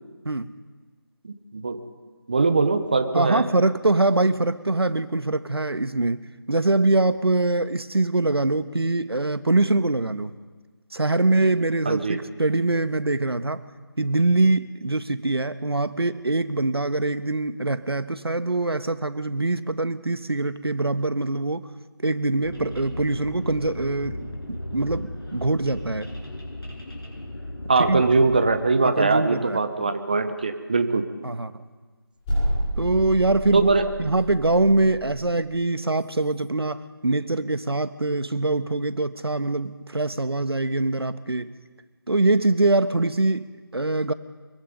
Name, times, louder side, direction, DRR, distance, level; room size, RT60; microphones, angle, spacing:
voice 1, 1.2-1.8 2.3-3.5 11.8-12.2 27.7-31.0 33.5-33.9, right 3 dB, 20° right, 9 dB, 1.0 m, -21 dB
voice 2, 3.1-10.3 10.9-13.6 14.0-21.7 22.0-26.1 27.8-28.1 28.8-29.6 31.2-31.5 32.8-33.7 34.0-41.5 42.1-44.1, right 2 dB, 75° right, 11 dB, 1.5 m, -23 dB
sound 1, 22.4-28.5, left 1 dB, 70° left, 7.9 m, -36 dB
sound 2, 32.2-35.3, equal, 10° left, 5.6 m, -29 dB
24.5 x 23.0 x 5.3 m, 1.4 s
figure-of-eight pair, 170°, 13 cm